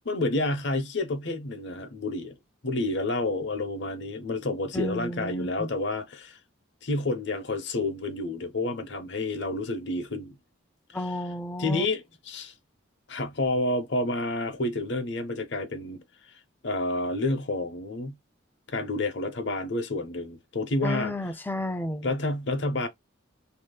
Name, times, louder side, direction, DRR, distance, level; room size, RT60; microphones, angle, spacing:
voice 1, 0.0-2.4 2.6-6.4 6.8-10.4 11.0-11.2 11.6-12.5 13.1-16.0 16.6-18.2 18.7-21.1 22.0-22.9, left 2 dB, 55° left, 0.9 m, -29 dB
voice 2, 4.7-5.7 10.9-11.9 20.8-22.1, left 1 dB, 10° left, 0.4 m, -32 dB
3.3 x 2.8 x 2.3 m
head